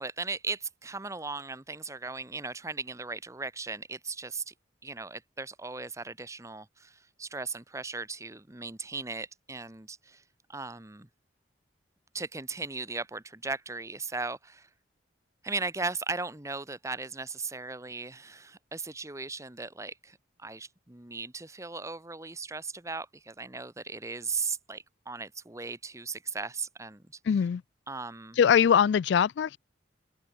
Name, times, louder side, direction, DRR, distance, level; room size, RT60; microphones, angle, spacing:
voice 1, 0.0-4.5 4.8-10.2 10.5-11.1 12.1-14.7 15.4-27.0 27.9-28.4, right 4 dB, 15° right, 1.1 m, -37 dB
voice 2, 27.3-27.6 28.4-29.6, left 7 dB, 65° left, 0.3 m, -22 dB
open air
head